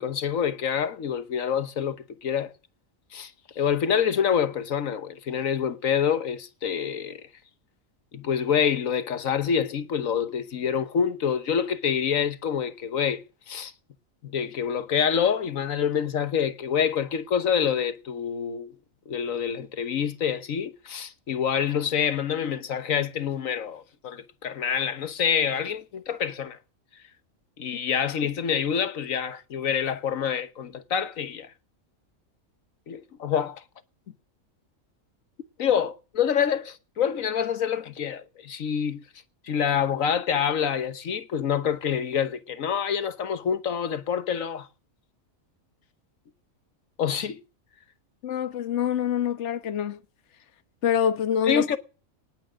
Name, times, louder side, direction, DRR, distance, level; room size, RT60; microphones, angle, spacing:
voice 1, 0.0-2.5 3.1-7.2 8.1-13.7 14.2-18.7 19.1-26.6 27.6-31.5 32.9-33.6 35.6-39.0 39.4-44.7 47.0-47.4 51.5-51.8, left 7 dB, 80° left, 1.5 m, -27 dB
voice 2, 48.2-50.0 50.8-51.7, left 9 dB, 60° left, 1.3 m, -25 dB
19.0 x 9.0 x 6.3 m
omnidirectional pair, 1.4 m